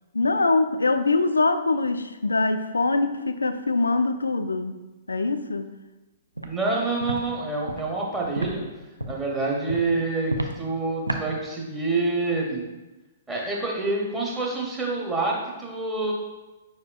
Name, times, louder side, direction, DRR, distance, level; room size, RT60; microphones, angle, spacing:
voice 1, 0.1-4.8 5.1-5.7, left 3 dB, 75° left, 10 dB, 0.3 m, -23 dB
voice 2, 6.4-8.6 9.1-12.7 13.3-16.1, right 3 dB, 15° right, -3 dB, 0.7 m, -27 dB
Walk footsteps, 6.4-6.5 7.0-7.2 7.6-7.8 8.3-8.5 9.0-9.2 9.7-9.8 10.3-10.5 11.1-11.2, right 1 dB, 85° right, 0.4 m, -29 dB
5.3 x 4.3 x 2.3 m, 1.1 s
figure-of-eight pair, 115°, 0 cm